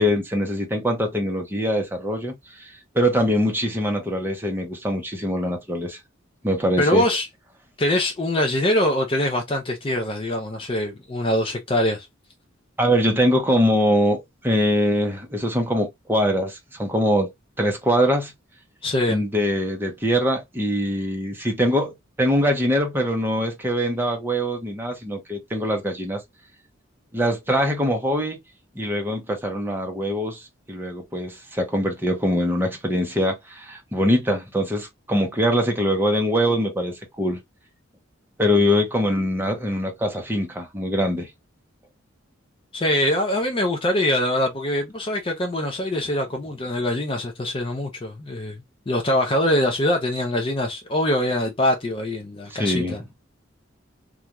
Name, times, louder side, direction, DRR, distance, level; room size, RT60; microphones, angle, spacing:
voice 1, 0.0-2.3 2.9-6.0 6.4-7.0 12.8-17.3 17.6-18.3 19.1-26.2 27.1-28.4 28.7-37.4 38.4-41.3 52.5-53.0, equal, 10° right, 0.7 m, -23 dB
voice 2, 6.8-7.3 7.8-12.1 18.8-19.2 42.7-48.6 48.9-53.0, left 1 dB, 25° left, 0.4 m, -23 dB
2.4 x 2.2 x 2.9 m
head